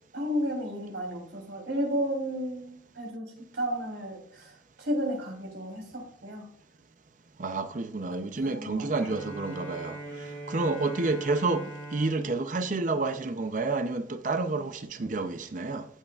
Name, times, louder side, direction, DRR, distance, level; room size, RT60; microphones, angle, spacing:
voice 1, 0.1-3.3 3.5-4.5 4.8-6.4 8.4-8.9, equal, 70° right, 3.4 m, -32 dB
voice 2, 7.4-11.7 11.9-15.9, right 3 dB, 45° right, 0.6 m, -29 dB
Bowed string instrument, 9.0-13.9, right 1 dB, 10° left, 3.6 m, -42 dB
14.0 x 6.4 x 2.4 m
head